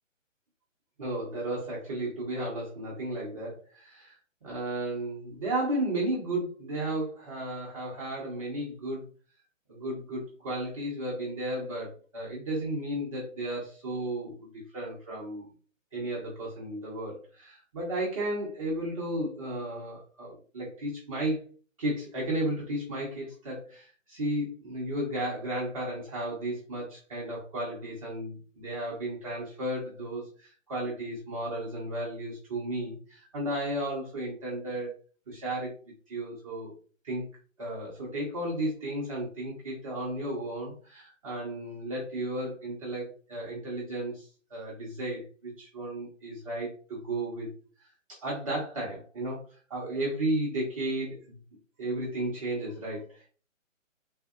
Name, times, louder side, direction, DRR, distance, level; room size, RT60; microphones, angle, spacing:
voice 1, 1.0-4.2 4.4-9.1 9.7-15.5 15.9-21.4 21.8-34.9 35.3-35.7 36.1-36.7 37.0-37.2 37.6-47.5 48.1-51.4 51.8-53.3, right 1 dB, 25° right, -5 dB, 0.7 m, -34 dB
3.5 x 2.6 x 2.4 m, 0.39 s
hypercardioid pair, 160°, 40 cm